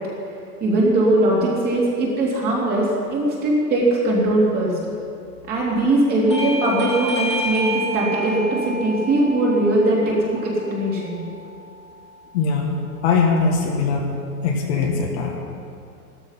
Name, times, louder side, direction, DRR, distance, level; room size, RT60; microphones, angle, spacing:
voice 1, 0.6-4.7 5.5-10.1 10.4-11.2, right 1 dB, 20° right, -4 dB, 2.8 m, -20 dB
Bell / Doorbell, 6.3-11.5, equal, 20° left, 0.3 m, -29 dB
voice 2, 12.3-12.7 13.0-14.0 14.4-15.4, left 5 dB, 45° left, 1 dB, 1.7 m, -21 dB
14.0 x 13.5 x 5.7 m, 2.6 s
supercardioid pair, 170°, 47 cm